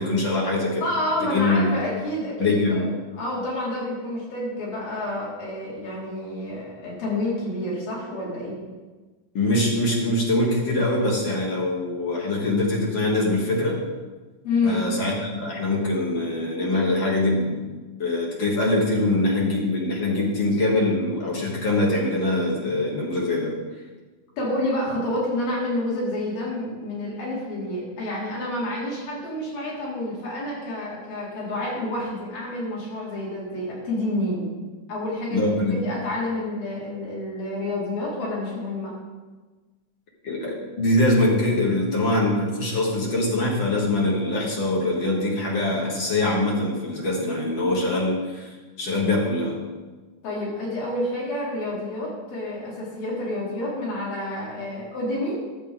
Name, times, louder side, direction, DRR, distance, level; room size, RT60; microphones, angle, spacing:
voice 1, 0.0-0.9 1.2-1.6 2.4-2.9 9.3-13.8 14.6-17.7 18.0-23.5 35.3-35.8 40.2-49.6, left 2 dB, 50° left, -3 dB, 1.5 m, -23 dB
voice 2, 0.8-8.6 14.4-14.8 24.4-34.5 34.9-38.9 50.2-55.4, left 1 dB, 80° left, -5 dB, 4.3 m, -29 dB
11.5 x 7.3 x 3.9 m, 1.3 s
omnidirectional pair, 4.0 m